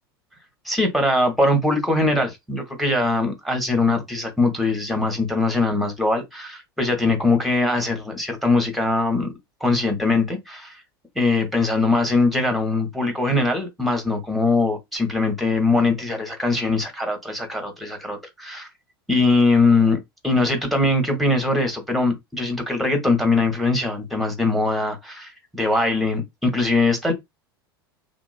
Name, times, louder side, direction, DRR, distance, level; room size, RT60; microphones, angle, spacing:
voice 1, 0.6-9.3 9.6-10.8 11.1-18.7 19.1-20.0 20.2-27.1, left 2 dB, ahead, 1.1 m, -21 dB
2.9 x 2.3 x 2.4 m
figure-of-eight pair, 80°, 13 cm